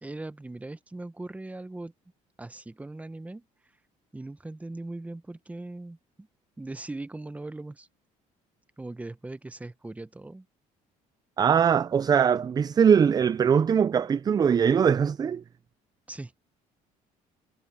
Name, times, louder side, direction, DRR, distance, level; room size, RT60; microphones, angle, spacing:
voice 1, 0.0-1.9 2.4-3.4 4.1-6.3 6.6-7.9 8.8-10.4 16.1-16.3, right 2 dB, 10° right, 1.1 m, -39 dB
voice 2, 11.4-15.4, right 7 dB, 25° right, 0.4 m, -21 dB
cardioid pair, 125°, 15 cm